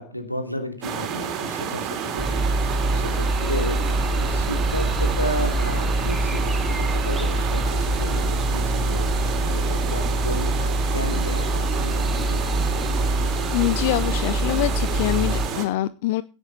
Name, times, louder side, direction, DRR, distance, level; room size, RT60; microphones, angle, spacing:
voice 1, 0.0-12.7, equal, 90° left, 6 dB, 2.8 m, -33 dB
sound 1, 0.8-15.7, right 7 dB, 35° right, 3.1 m, -30 dB
sound 2, 2.2-15.5, right 1 dB, 5° right, 1.1 m, -24 dB
voice 2, 13.5-16.2, left 16 dB, 50° left, 17 dB, 0.5 m, -24 dB
17.0 x 8.1 x 4.1 m, 0.34 s
figure-of-eight pair, 90°, 0 cm